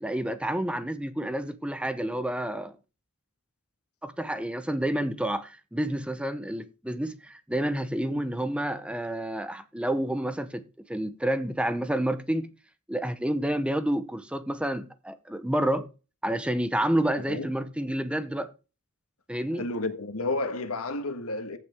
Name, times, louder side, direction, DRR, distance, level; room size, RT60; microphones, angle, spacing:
voice 1, 0.0-2.7 4.0-12.5 12.9-15.9 16.2-18.5 19.3-19.7, right 1 dB, 5° right, 0.8 m, -29 dB
voice 2, 19.5-21.6, left 2 dB, 85° left, 1.5 m, -31 dB
14.5 x 6.0 x 3.5 m
head